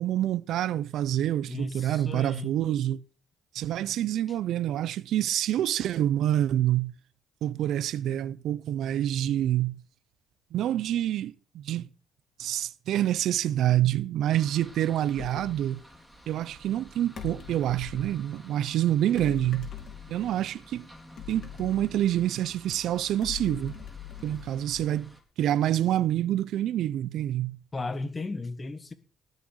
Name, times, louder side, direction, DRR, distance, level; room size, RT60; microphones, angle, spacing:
voice 1, 0.0-3.0 3.5-6.9 7.4-9.8 10.5-11.9 12.4-15.8 16.3-19.7 20.1-20.9 21.3-23.8 24.2-25.1 25.4-27.6, right 12 dB, 80° right, 0.5 m, -27 dB
voice 2, 1.5-2.5 27.7-28.9, left 2 dB, 25° left, 1.5 m, -35 dB
sound 1, 14.3-25.2, left 1 dB, ahead, 4.1 m, -51 dB
sound 2, 15.1-15.6 17.1-18.1 19.2-20.4 21.2-22.5 23.2-25.1, left 9 dB, 55° left, 4.8 m, -42 dB
18.5 x 6.6 x 6.4 m
cardioid pair, 90°, 0 cm